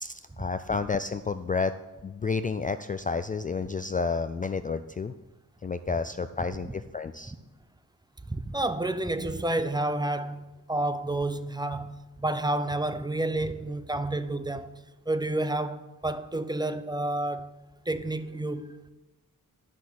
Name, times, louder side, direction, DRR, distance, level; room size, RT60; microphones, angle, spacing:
voice 1, 0.0-1.7 2.0-5.1 5.6-7.3, left 4 dB, 25° left, 0.3 m, -30 dB
voice 2, 8.3-14.7 15.1-17.5 17.9-18.8, right 2 dB, 15° right, 0.6 m, -30 dB
12.5 x 6.1 x 7.4 m
wide cardioid pair, 110°, 32 cm